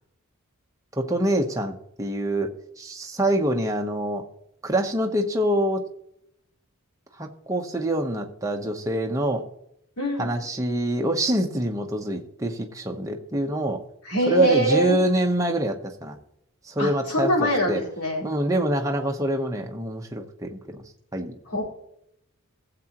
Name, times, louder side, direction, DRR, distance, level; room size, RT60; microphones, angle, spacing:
voice 1, 0.9-4.2 4.6-5.8 7.2-9.4 10.2-13.8 14.3-16.2 16.6-17.8 18.2-20.8 21.1-21.3, right 1 dB, 15° right, 2 dB, 1.0 m, -25 dB
voice 2, 10.0-10.3 14.0-15.0 16.8-18.3 21.5-21.6, right 1 dB, 85° left, -5 dB, 4.5 m, -23 dB
17.0 x 7.6 x 3.0 m, 0.77 s
head